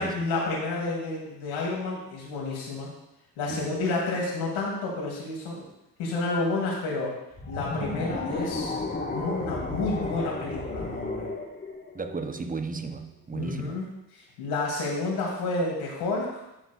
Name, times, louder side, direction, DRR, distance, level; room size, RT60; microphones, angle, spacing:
voice 1, 0.0-2.9 3.4-5.6 6.0-7.1 7.5-8.7 9.1-11.3 13.3-13.8 14.2-16.4, left 3 dB, 80° left, 2.7 m, -30 dB
sound 1, 7.3-12.6, left 2 dB, 20° left, 1.6 m, -33 dB
voice 2, 11.9-13.8, right 4 dB, 20° right, 0.8 m, -34 dB
11.5 x 6.2 x 2.4 m
hypercardioid pair, 45°, 45 cm